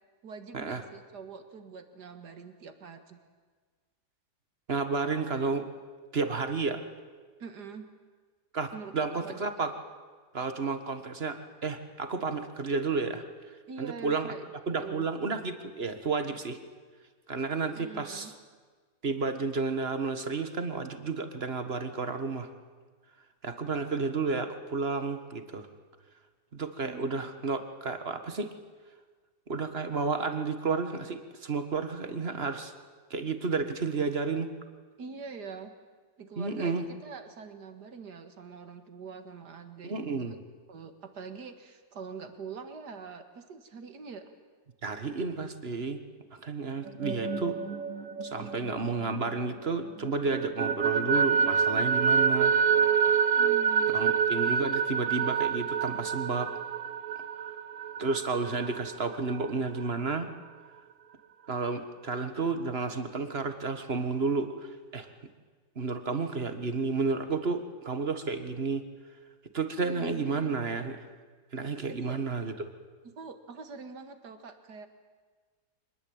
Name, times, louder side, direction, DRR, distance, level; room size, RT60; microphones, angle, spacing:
voice 1, 0.2-3.2 7.4-7.9 8.7-9.5 13.7-14.4 14.8-15.1 17.7-18.3 26.8-27.2 35.0-35.7 36.2-40.4 40.7-44.3 53.4-53.9 69.8-70.5 71.9-72.2 73.0-74.9, right 5 dB, 90° right, 8 dB, 2.4 m, -44 dB
voice 2, 4.7-5.7 6.1-6.8 8.5-9.7 10.3-13.2 13.8-14.3 14.7-16.6 17.3-18.3 19.0-22.5 23.4-25.7 26.5-28.5 29.5-32.7 33.1-34.5 36.4-36.9 39.8-40.4 44.8-46.0 46.4-47.6 48.2-52.5 53.9-56.5 58.0-60.3 61.5-65.1 65.8-68.8 69.5-71.0 71.5-72.5, right 4 dB, 40° right, 8 dB, 1.7 m, -31 dB
sound 1, 46.9-49.7 50.0-59.5, right 7 dB, 55° right, 1.2 m, -27 dB
25.0 x 20.0 x 8.8 m, 1.5 s
omnidirectional pair, 1.7 m